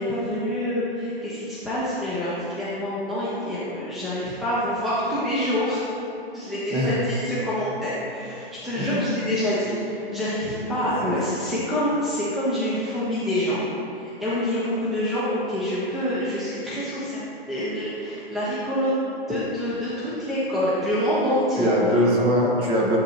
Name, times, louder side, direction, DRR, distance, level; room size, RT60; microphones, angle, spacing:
voice 1, 0.0-5.8 6.3-13.6 13.9-17.2 17.5-19.0 19.3-21.7, left 1 dB, ahead, -10 dB, 0.8 m, -26 dB
voice 2, 10.8-11.2 21.6-23.0, equal, 20° right, -2 dB, 1.2 m, -22 dB
11.5 x 7.6 x 2.9 m, 2.9 s
hypercardioid pair, 150°, 31 cm